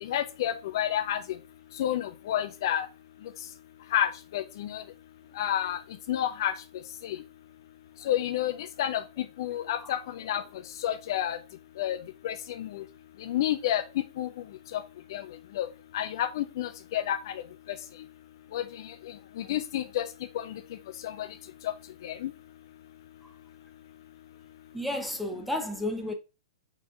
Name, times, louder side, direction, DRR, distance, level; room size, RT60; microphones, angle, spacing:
voice 1, 0.0-1.2 1.8-2.9 3.9-4.8 5.4-5.8 6.1-6.5 7.0-7.2 8.1-8.5 8.8-9.0 9.4-10.4 10.8-11.4 11.8-12.0 12.2-12.8 13.2-13.8 14.2-14.3 14.7-14.8 15.1-15.2 15.6-15.7 15.9-17.2 18.5-18.6 19.4-20.0 20.3-20.5 21.0-21.3 21.6-21.7 22.0-22.3, left 11 dB, 50° left, 0.4 m, -29 dB
voice 2, 9.6-10.0 23.2-23.3 24.7-26.1, left 1 dB, ahead, 0.7 m, -33 dB
4.4 x 4.1 x 2.4 m
figure-of-eight pair, 110°, 3 cm